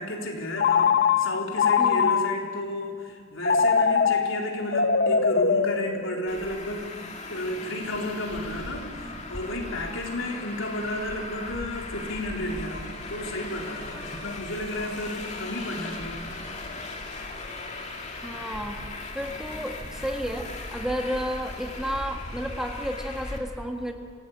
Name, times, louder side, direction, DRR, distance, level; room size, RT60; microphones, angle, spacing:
voice 1, 0.0-6.9 7.3-16.3, left 1 dB, 75° left, 1 dB, 3.9 m, -32 dB
Telephone, 0.6-2.6 3.4-6.5, left 6 dB, 55° left, 1.1 m, -23 dB
voice 2, 1.8-2.2 18.2-23.9, equal, 5° right, 3 dB, 1.6 m, -32 dB
Traffic noise roadway noise, 6.3-23.4, left 2 dB, 35° left, 2.5 m, -38 dB
26.5 x 17.0 x 8.7 m, 2.2 s
head